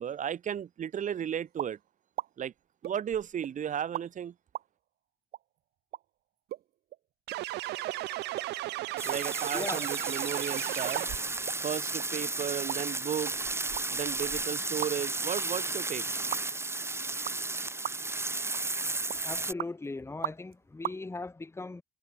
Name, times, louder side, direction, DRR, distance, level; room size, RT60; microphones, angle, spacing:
voice 1, 0.0-1.8 2.4-2.5 2.8-4.3 9.0-11.1 11.6-13.5 13.9-16.1, right 9 dB, 50° right, 4.4 m, -34 dB
sound 1, 1.6-1.8 2.2-2.3 2.8-3.5 3.9-4.1 4.6-4.7 5.3-5.4 5.9-6.0 6.5-6.6 6.9-7.0 7.3-7.4 7.9-8.0 8.4-8.5 8.9-9.2 9.5-10.4 11.0-11.6 12.0-12.1 12.7-12.8 13.3-15.1 15.4-15.5 16.3-16.4 17.3-17.5 17.8-18.2 18.5-18.8 19.1-19.7 20.2-20.5 20.8-21.0, right 13 dB, 65° right, 2.9 m, -38 dB
sound 2, 7.3-11.4, right 18 dB, 85° right, 1.5 m, -36 dB
Burger Fry, 9.0-19.5, right 2 dB, 15° right, 5.1 m, -33 dB
voice 2, 9.5-9.9 19.2-21.8, left 3 dB, 15° left, 3.2 m, -38 dB
cardioid pair, 110°, 17 cm